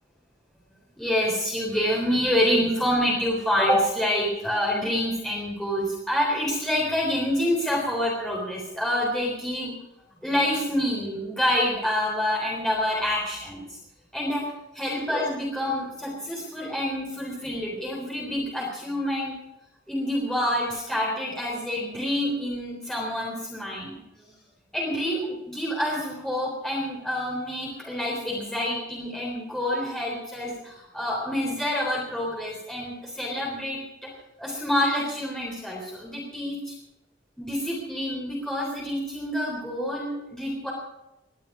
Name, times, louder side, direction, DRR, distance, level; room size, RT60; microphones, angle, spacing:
voice 1, 1.0-9.7 10.2-13.8 14.1-19.4 19.9-24.0 24.7-34.1 34.4-36.7 37.4-40.7, equal, 5° left, -4 dB, 3.6 m, -27 dB
20.5 x 12.0 x 4.9 m, 0.95 s
head